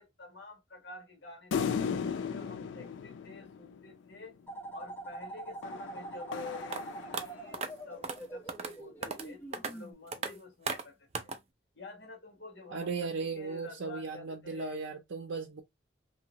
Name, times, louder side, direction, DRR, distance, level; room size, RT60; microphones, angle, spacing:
voice 1, 0.0-1.8 2.3-4.4 4.7-11.3 11.7-14.8, left 3 dB, 60° left, 1.2 m, -49 dB
sound 1, 1.5-4.2 5.6-7.7, left 6 dB, 75° left, 0.3 m, -36 dB
sound 2, 4.5-9.9, right 2 dB, 10° left, 0.9 m, -44 dB
sound 3, 6.7-6.8 7.1-7.2 7.5-7.7 8.0-8.2 8.5-8.7 9.0-9.3 9.5-9.7 10.1-10.3 10.7-10.8 11.1-11.4, right 4 dB, 35° right, 0.4 m, -35 dB
voice 2, 12.7-15.6, right 4 dB, 80° right, 0.5 m, -36 dB
2.9 x 2.7 x 2.8 m
head